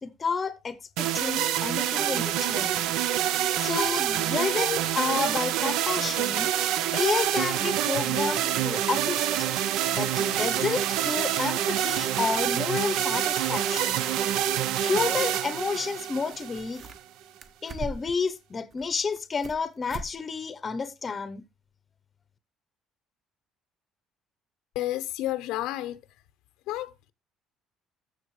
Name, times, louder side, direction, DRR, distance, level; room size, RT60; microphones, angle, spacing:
voice 1, 0.0-2.8 3.5-6.5 6.9-9.5 9.9-14.0 14.8-16.8 17.6-21.4, left 5 dB, 20° left, 0.8 m, -30 dB
sound 1, 1.0-17.0, right 11 dB, 70° right, 0.8 m, -27 dB
sound 2, 16.0-16.1 16.3-17.1 17.4-18.2 18.7-19.6 19.9-20.1 20.5-20.6 21.1-21.2, right 2 dB, 30° right, 1.0 m, -40 dB
voice 2, 24.7-26.0 26.7-27.1, left 14 dB, 75° left, 0.8 m, -31 dB
14.5 x 6.3 x 3.2 m
cardioid pair, 170°, 0 cm